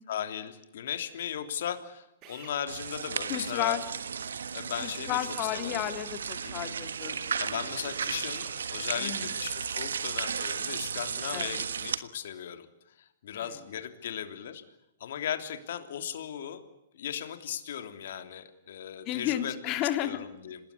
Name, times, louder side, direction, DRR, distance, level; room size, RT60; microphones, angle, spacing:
voice 1, 0.1-3.8 4.5-5.9 6.4-6.8 7.4-12.7 13.0-14.6 15.0-16.6 16.9-19.5 20.0-20.6, left 9 dB, 70° left, 8 dB, 3.3 m, -37 dB
Drill, 2.2-2.6 5.2-5.5 8.2-8.5 11.2-11.5, right 6 dB, 35° right, 7.1 m, -50 dB
sound 1, 2.7-12.0, right 6 dB, 90° right, 1.4 m, -34 dB
voice 2, 3.3-3.8 4.8-7.2 9.0-9.2 11.3-11.5 13.3-13.4 19.1-20.2, left 12 dB, 35° left, 8 dB, 3.0 m, -32 dB
27.0 x 19.5 x 8.6 m, 0.87 s
hypercardioid pair, 130°, 0 cm